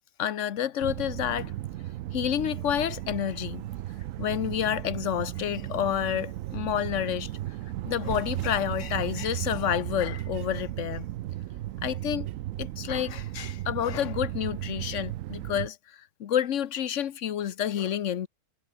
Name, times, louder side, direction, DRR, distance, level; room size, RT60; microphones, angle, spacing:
voice 1, 0.2-1.5 2.1-3.7 4.2-7.3 7.8-11.1 11.8-12.3 12.6-18.3, left 10 dB, 70° left, 1.2 m, -29 dB
sound 1, 0.8-15.7, right 14 dB, 90° right, 1.0 m, -35 dB
omnidirectional pair, 1.3 m